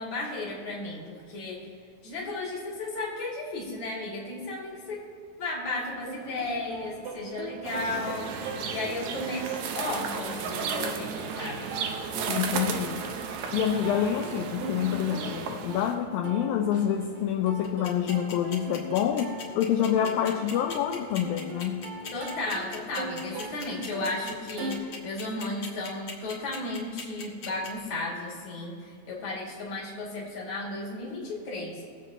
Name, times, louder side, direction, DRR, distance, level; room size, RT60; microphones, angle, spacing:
voice 1, 0.0-1.7 2.0-5.0 5.4-8.3 8.7-11.7 22.1-31.8, left 2 dB, 35° left, -4 dB, 2.6 m, -34 dB
Plucked string instrument, 5.8-24.8, right 3 dB, 65° right, 2.4 m, -41 dB
sound 1, 7.6-15.9, right 6 dB, 80° right, 1.6 m, -34 dB
voice 2, 12.3-21.8, left 9 dB, 80° left, 3 dB, 2.1 m, -27 dB
sound 2, 17.6-27.7, left 6 dB, 55° left, 1.4 m, -39 dB
22.5 x 7.7 x 3.0 m, 2.4 s
omnidirectional pair, 4.5 m